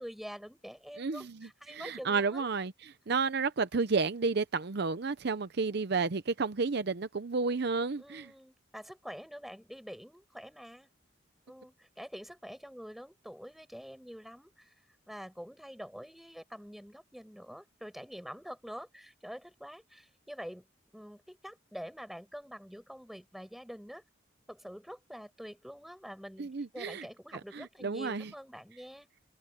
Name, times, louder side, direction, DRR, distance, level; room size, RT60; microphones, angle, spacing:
voice 1, 0.0-2.4 8.0-10.9 11.5-14.7 15.1-20.7 20.9-24.0 24.5-29.1, equal, ahead, 7.2 m, -46 dB
voice 2, 1.0-8.3 26.4-27.0 27.5-28.3, right 4 dB, 60° right, 0.7 m, -31 dB
open air
head